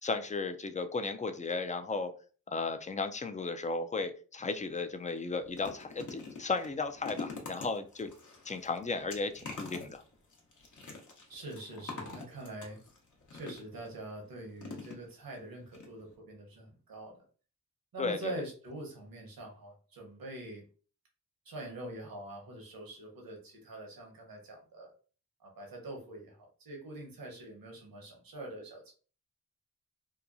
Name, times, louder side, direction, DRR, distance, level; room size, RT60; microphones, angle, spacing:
voice 1, 0.0-2.1 2.5-8.1 8.4-10.0 18.0-18.3, left 3 dB, 20° left, 8 dB, 0.4 m, -35 dB
sound 1, 4.5-4.7 5.1-13.9 14.6-15.4 15.7-15.9 16.1-16.2, left 4 dB, 60° left, 0.9 m, -46 dB
voice 2, 11.3-12.8 13.3-17.2 17.9-20.6 21.4-24.9 25.4-28.9, right 1 dB, 80° right, 0 dB, 1.0 m, -44 dB
2.9 x 2.2 x 2.5 m, 0.39 s
cardioid pair, 40°, 34 cm